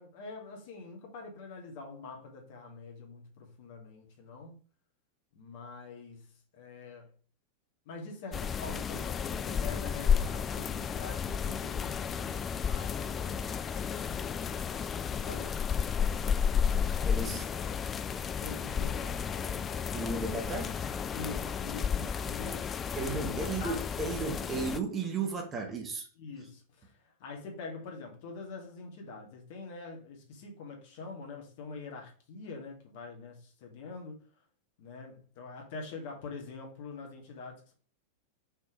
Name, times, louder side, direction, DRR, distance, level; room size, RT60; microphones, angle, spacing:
voice 1, 0.0-4.6 5.3-7.1 7.9-13.5 13.9-15.5 18.4-19.7 21.1-22.7 23.2-23.8 26.2-34.2 34.8-37.7, left 4 dB, 50° left, 2.2 m, -45 dB
sound 1, 8.3-24.8, left 7 dB, 20° left, 0.4 m, -32 dB
voice 2, 17.0-17.5 19.9-20.8 22.9-26.1, right 4 dB, 25° right, 1.6 m, -34 dB
5.6 x 4.3 x 5.0 m
figure-of-eight pair, 90°, 0 cm